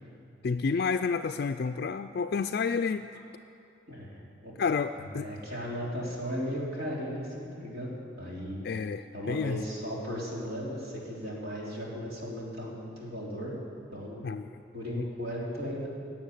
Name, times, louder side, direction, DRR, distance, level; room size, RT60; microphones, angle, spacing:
voice 1, 0.4-3.1 4.6-5.3 8.6-9.6 14.2-14.5 14.9-15.1, left 5 dB, 55° left, 8 dB, 0.4 m, -30 dB
voice 2, 5.0-7.9 8.2-8.6 9.1-13.5 13.9-14.3 14.7-15.9, equal, 55° right, -5 dB, 3.6 m, -36 dB
16.5 x 7.2 x 10.0 m, 2.6 s
head